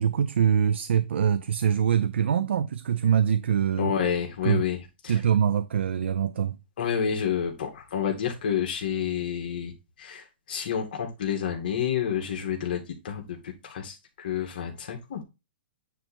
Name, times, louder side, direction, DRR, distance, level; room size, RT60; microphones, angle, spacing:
voice 1, 0.0-3.9 4.4-4.6 5.1-6.6, right 8 dB, 80° right, 0.6 m, -24 dB
voice 2, 3.8-4.8 5.0-5.1 6.8-9.7 10.0-15.2, left 8 dB, 50° left, 2.1 m, -29 dB
9.2 x 3.2 x 4.3 m
hypercardioid pair, 165°, 6 cm